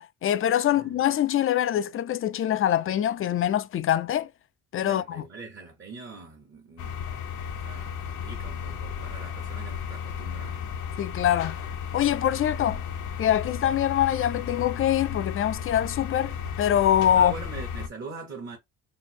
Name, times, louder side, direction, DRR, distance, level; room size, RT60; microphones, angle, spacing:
voice 1, 0.0-4.3 4.7-5.3 11.0-11.6 11.9-12.8 13.2-17.3, left 11 dB, 45° left, 0.4 m, -24 dB
voice 2, 0.7-1.1 4.8-7.1 7.5-10.7 17.2-18.6, right 4 dB, 40° right, 1.1 m, -43 dB
sound 1, 6.8-17.9, left 7 dB, 75° left, 0.7 m, -34 dB
3.3 x 2.0 x 4.2 m
cardioid pair, 90°, 30 cm